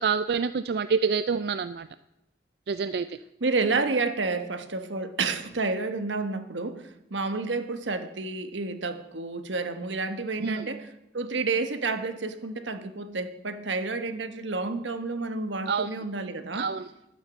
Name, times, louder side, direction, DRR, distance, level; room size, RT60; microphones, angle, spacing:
voice 1, 0.0-1.9 2.7-3.1 10.4-10.7 15.7-15.9 16.5-16.9, right 5 dB, 60° right, 13 dB, 0.4 m, -27 dB
voice 2, 3.4-6.8 7.1-16.7, right 3 dB, 85° right, 9 dB, 1.2 m, -30 dB
12.5 x 10.0 x 7.1 m, 0.92 s
head